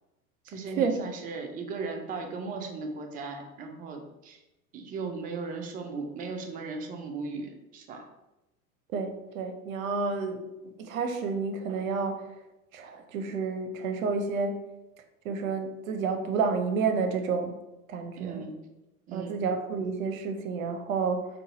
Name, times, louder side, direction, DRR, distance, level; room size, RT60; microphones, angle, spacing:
voice 1, 0.4-4.4 4.7-8.0 18.2-18.5 19.1-19.4, right 4 dB, 20° right, 3 dB, 0.4 m, -37 dB
voice 2, 8.9-12.3 12.7-14.6 15.2-17.6 17.9-18.5 19.1-21.3, right 5 dB, 65° right, 6 dB, 0.7 m, -30 dB
3.9 x 2.3 x 3.8 m, 0.96 s
figure-of-eight pair, 85°, 44 cm